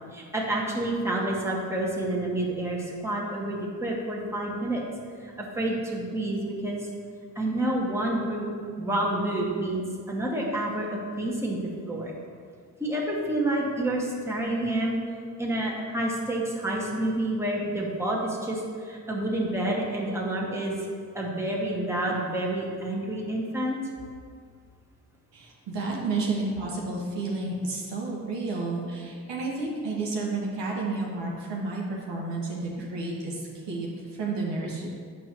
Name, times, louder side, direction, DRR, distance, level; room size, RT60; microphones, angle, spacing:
voice 1, 0.1-4.8 5.2-6.9 7.3-8.5 8.8-12.1 12.8-15.0 15.4-20.8 21.1-23.8, right 1 dB, 5° right, -4 dB, 1.6 m, -29 dB
voice 2, 25.3-34.9, right 3 dB, 70° right, -3 dB, 1.3 m, -31 dB
7.6 x 5.3 x 3.0 m, 2.1 s
hypercardioid pair, 40°, 44 cm